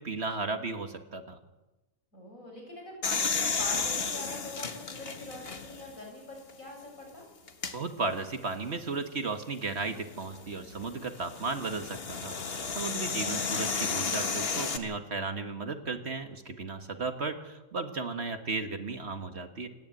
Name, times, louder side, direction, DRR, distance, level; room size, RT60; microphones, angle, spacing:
voice 1, 0.0-1.4 7.7-19.7, right 3 dB, 50° right, 7 dB, 1.6 m, -35 dB
voice 2, 2.1-7.2, left 1 dB, 70° left, 0 dB, 7.4 m, -44 dB
sound 1, 3.0-5.9 6.5-6.6 7.5-7.7 9.9-14.8, left 5 dB, 45° left, 1.6 m, -33 dB
27.5 x 10.5 x 9.1 m, 1.1 s
omnidirectional pair, 1.5 m